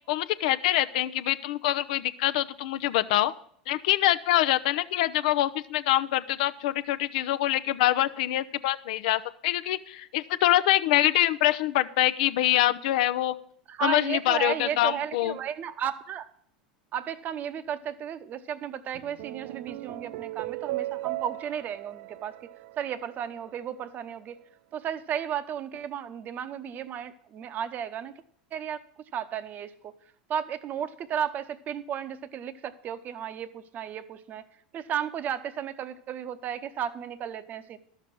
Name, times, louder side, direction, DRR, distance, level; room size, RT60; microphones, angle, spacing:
voice 1, 0.1-3.3 3.7-13.3 13.8-15.4, left 14 dB, 65° left, 12 dB, 0.6 m, -25 dB
voice 2, 13.7-16.3 16.9-22.5 22.8-24.4 24.7-28.1 28.5-28.8 29.1-29.9 30.3-34.5 34.7-37.8, right 9 dB, 40° right, 12 dB, 0.9 m, -34 dB
sound 1, 18.9-23.5, right 18 dB, 55° right, 0.3 m, -37 dB
12.5 x 6.8 x 6.0 m, 0.65 s
hypercardioid pair, 85°, 5 cm